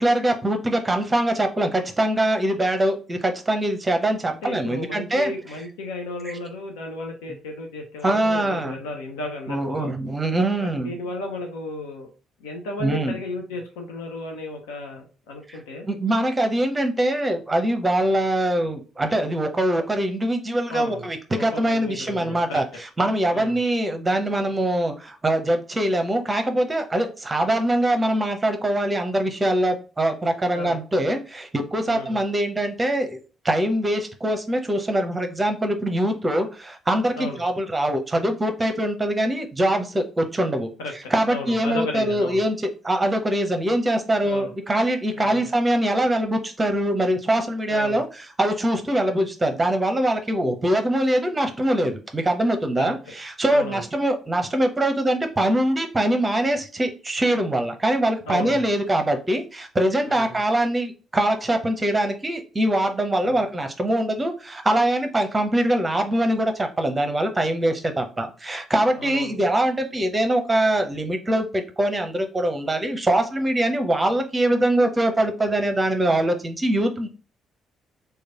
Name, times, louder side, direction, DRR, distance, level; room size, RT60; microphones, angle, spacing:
voice 1, 0.0-5.3 6.2-6.4 8.0-8.8 9.5-10.9 12.8-13.2 15.5-15.6 15.9-33.2 33.4-40.7 41.1-77.1, right 1 dB, 20° right, 6 dB, 0.7 m, -23 dB
voice 2, 4.3-9.9 10.6-12.1 12.4-15.9 20.7-21.1 21.4-22.6 23.3-23.6 30.5-30.8 31.9-32.2 37.2-37.4 40.8-40.9 41.3-42.4 44.2-44.5 45.2-45.5 47.7-48.0 52.8-53.1 53.5-53.8 58.3-58.7 60.1-60.4 63.2-63.4 69.0-69.3, left 2 dB, 70° left, 2 dB, 0.5 m, -34 dB
3.1 x 2.3 x 3.5 m, 0.36 s
figure-of-eight pair, 45°, 0 cm